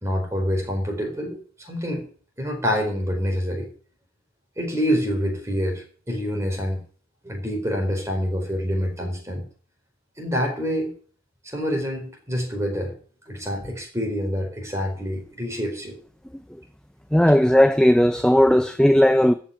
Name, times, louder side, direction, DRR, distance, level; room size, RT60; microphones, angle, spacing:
voice 1, 0.0-2.0 2.4-3.7 4.6-6.8 7.2-9.4 10.2-10.9 11.4-12.9 13.3-16.0, equal, 15° right, 4.2 m, -26 dB
voice 2, 17.1-19.3, equal, 5° left, 0.5 m, -16 dB
14.0 x 5.7 x 9.1 m
head